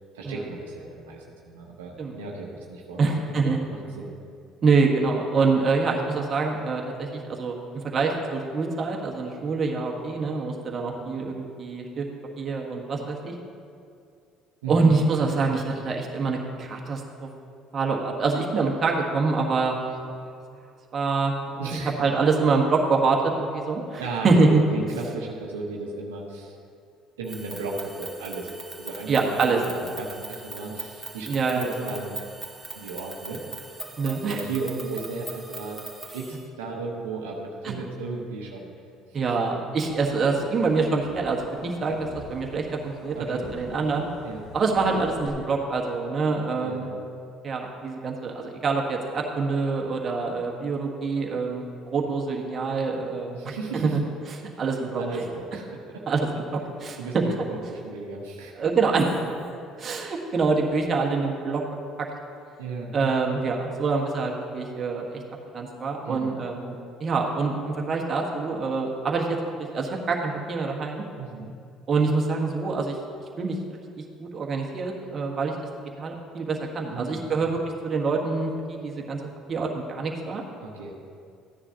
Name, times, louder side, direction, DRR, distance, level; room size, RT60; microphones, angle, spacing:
voice 1, 0.1-4.1 14.6-15.0 21.6-22.1 24.0-26.6 27.2-32.2 32.7-33.4 34.0-35.8 36.1-38.7 43.1-43.5 44.2-44.4 46.6-46.9 53.3-54.0 55.0-56.0 57.0-58.7 62.6-63.2 66.0-66.3 71.2-71.5 76.9-77.5 80.6-80.9, right 3 dB, 85° right, -2 dB, 1.1 m, -35 dB
voice 2, 3.0-3.6 4.6-7.5 7.8-12.0 12.4-13.3 14.7-17.3 17.7-19.8 20.9-24.6 29.1-29.6 31.3-31.9 34.0-34.4 37.6-37.7 39.1-44.1 44.5-46.9 47.4-51.6 51.9-54.0 54.6-55.0 56.1-57.0 58.6-59.3 59.8-61.6 62.0-62.1 62.9-65.2 65.5-66.7 67.0-69.4 69.7-71.0 71.9-73.0 73.4-73.6 74.2-75.5 76.0-77.6 77.8-79.2 79.5-80.4, right 4 dB, 40° right, 0 dB, 1.5 m, -25 dB
sound 1, 27.2-36.4, right 3 dB, 20° right, 2.3 m, -40 dB
sound 2, 39.9-45.3, left 1 dB, 65° left, 2.2 m, -44 dB
14.0 x 9.7 x 2.9 m, 2.4 s
hypercardioid pair, 60°, 0 cm